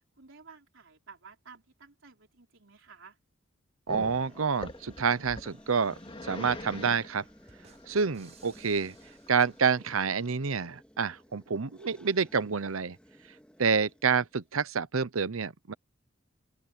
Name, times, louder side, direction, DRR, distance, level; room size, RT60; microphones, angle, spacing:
voice 1, 0.2-3.2, right 5 dB, 65° right, 4.5 m, -53 dB
Growling, 3.9-9.7, left 2 dB, 25° left, 2.3 m, -44 dB
voice 2, 3.9-6.0 6.2-7.2 7.9-8.9 9.3-13.0 13.6-15.7, right 5 dB, 85° right, 0.8 m, -28 dB
sound 1, 4.0-14.5, equal, 5° left, 3.0 m, -56 dB
sound 2, 7.5-10.3, right 6 dB, 35° right, 4.6 m, -61 dB
open air
head